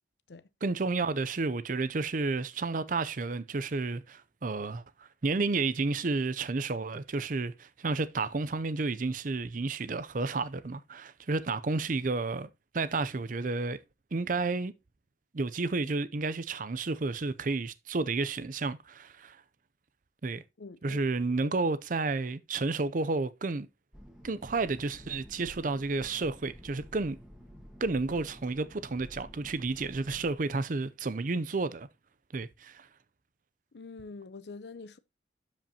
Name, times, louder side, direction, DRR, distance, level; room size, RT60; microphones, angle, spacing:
voice 1, 0.6-13.8 14.1-14.7 15.3-19.4 20.2-20.4 20.8-23.7 24.2-27.2 27.8-31.9 32.3-32.9, right 3 dB, 45° right, 0.6 m, -31 dB
voice 2, 20.6-21.0 21.3-21.5 33.7-35.0, left 3 dB, 70° left, 0.6 m, -45 dB
sound 1, 23.9-30.3, equal, 5° right, 1.4 m, -51 dB
12.0 x 5.2 x 2.9 m
head